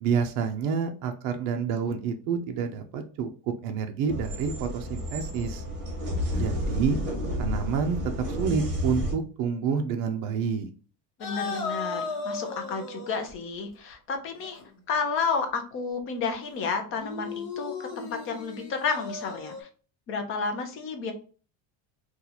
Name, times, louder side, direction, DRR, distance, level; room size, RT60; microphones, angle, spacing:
voice 1, 0.0-3.3 3.6-5.6 6.3-7.0 7.4-10.7, right 6 dB, 50° right, 5 dB, 0.4 m, -28 dB
sound 1, 4.1-9.1, equal, 35° right, 1.2 m, -31 dB
sound 2, 11.2-13.4 14.4-14.7 16.9-19.6, left 4 dB, 60° left, 1.0 m, -36 dB
voice 2, 11.2-14.6 14.9-19.7 20.1-21.1, left 5 dB, 30° left, 5 dB, 0.4 m, -31 dB
2.9 x 2.3 x 3.9 m, 0.39 s
cardioid pair, 170°, 43 cm